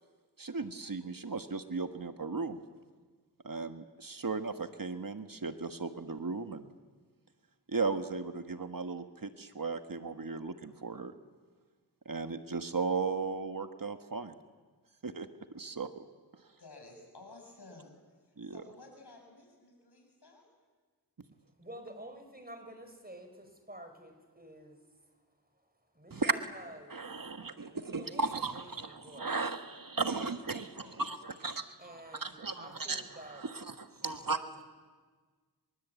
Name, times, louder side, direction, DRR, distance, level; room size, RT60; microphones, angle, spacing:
voice 1, 0.4-2.6 3.4-6.7 7.7-11.1 12.0-14.3 15.0-15.3 15.5-16.0 18.4-18.6 26.1-26.3 26.9-31.8 32.1-34.6, right 4 dB, 55° right, 8 dB, 1.5 m, -36 dB
voice 2, 16.6-18.0 18.4-20.4 29.6-30.1 30.5-31.1, left 2 dB, 80° left, 2 dB, 6.8 m, -54 dB
voice 3, 21.6-25.2 25.9-27.1 28.0-28.3 28.5-29.3 31.8-33.4 33.9-34.6, right 1 dB, 25° right, 6 dB, 5.7 m, -50 dB
29.5 x 23.5 x 8.3 m, 1.5 s
wide cardioid pair, 40°, 39 cm